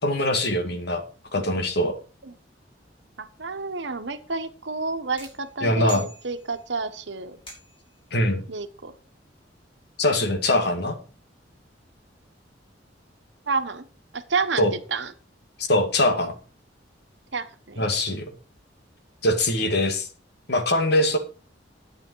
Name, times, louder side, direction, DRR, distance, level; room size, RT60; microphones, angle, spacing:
voice 1, 0.0-1.0 1.3-2.0 5.6-6.0 8.1-8.4 10.0-11.0 14.6-14.7 15.7-16.3 17.8-18.3 19.2-20.1 20.5-21.2, left 1 dB, 60° left, 7 dB, 2.1 m, -22 dB
voice 2, 3.2-7.4 8.5-9.0 13.5-13.9 14.1-15.1 16.1-16.3 17.3-18.2, right 4 dB, 75° right, 9 dB, 1.3 m, -30 dB
sound 1, 5.2-6.8 7.5-8.0, right 2 dB, 30° left, 6.2 m, -43 dB
11.5 x 8.9 x 4.7 m, 0.37 s
head